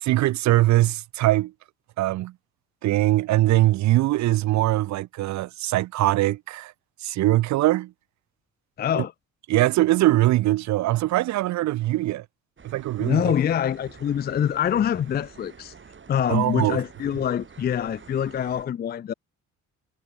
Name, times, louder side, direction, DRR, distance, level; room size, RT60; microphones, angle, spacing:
voice 1, 0.0-1.5 2.0-2.3 2.8-6.7 7.0-7.9 9.0-9.1 9.5-12.2 12.6-13.3 16.3-16.8, right 16 dB, 65° right, 0.5 m, -22 dB
voice 2, 8.8-9.1 13.0-15.7 16.1-19.1, left 9 dB, 35° left, 0.4 m, -25 dB
sound 1, 12.6-18.7, right 6 dB, 40° right, 7.1 m, -48 dB
cardioid pair, 90°, 30 cm